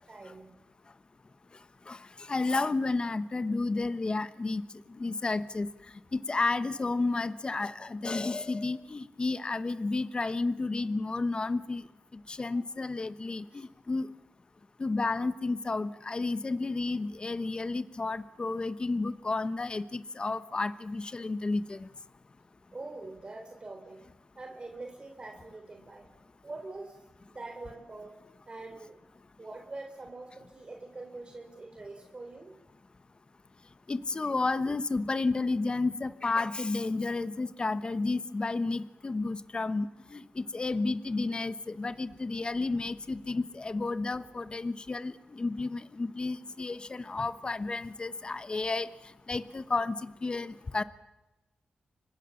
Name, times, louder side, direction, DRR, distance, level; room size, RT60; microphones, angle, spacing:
voice 1, 0.1-0.5 13.5-13.6 22.7-24.0 24.4-26.1 26.4-27.0 27.2-28.2 28.5-29.0 29.4-32.5, right 2 dB, 30° right, 3 dB, 3.7 m, -44 dB
voice 2, 2.3-4.6 5.0-5.7 6.1-11.8 12.3-14.1 14.8-21.9 33.9-48.9 49.3-50.8, left 3 dB, 30° left, 13 dB, 1.1 m, -31 dB
30.0 x 25.0 x 7.2 m, 1.0 s
wide cardioid pair, 100°, 3 cm